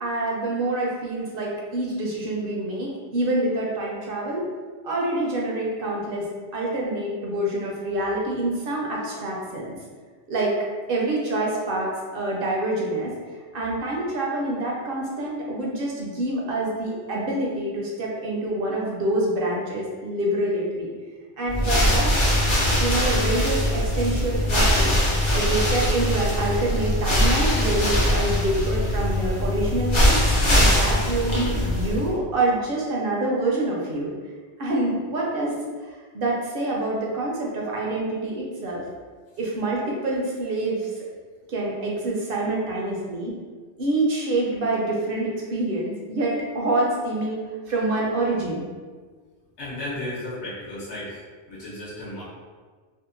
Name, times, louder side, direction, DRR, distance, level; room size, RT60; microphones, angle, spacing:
voice 1, 0.0-4.5 4.8-6.3 6.5-9.7 10.3-10.5 10.9-13.1 13.5-20.9 21.4-22.1 22.8-25.0 25.3-30.2 30.6-34.1 34.6-35.5 36.1-38.8 39.4-41.0 41.5-43.3 43.8-47.4 47.7-48.6, right 2 dB, 60° right, -3 dB, 0.7 m, -26 dB
sound 1, 21.5-32.1, left 1 dB, 55° left, 0.3 m, -21 dB
voice 2, 49.6-51.2 51.5-52.2, left 1 dB, 70° left, -7 dB, 1.0 m, -34 dB
2.7 x 2.1 x 2.5 m, 1.5 s
omnidirectional pair, 1.2 m